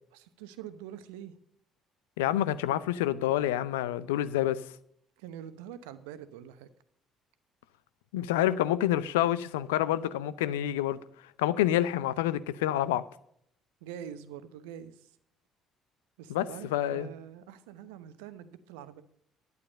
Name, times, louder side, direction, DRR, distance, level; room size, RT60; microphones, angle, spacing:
voice 1, 0.1-1.3 5.2-6.7 13.8-15.1 16.2-19.0, right 9 dB, 70° right, 0.9 m, -45 dB
voice 2, 2.2-4.6 8.1-11.0 11.4-13.0 16.3-17.1, left 12 dB, 75° left, 0.5 m, -28 dB
11.5 x 9.5 x 5.2 m
figure-of-eight pair, 50°, 0 cm